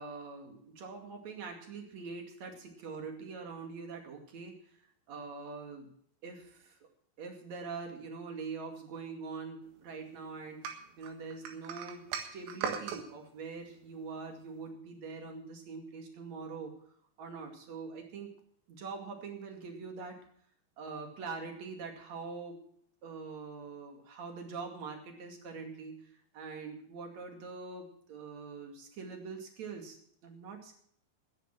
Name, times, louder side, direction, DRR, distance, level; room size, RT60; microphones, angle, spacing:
voice 1, 0.0-4.5 5.1-5.9 6.2-6.8 7.2-12.0 12.3-16.7 17.2-18.3 18.7-20.2 20.8-22.6 23.0-26.0 26.3-30.0 30.2-30.8, right 4 dB, 45° right, 4 dB, 2.7 m, -43 dB
sound 1, 10.6-13.0, right 7 dB, 75° right, 4.1 m, -38 dB
14.5 x 10.5 x 6.0 m, 0.64 s
omnidirectional pair, 5.8 m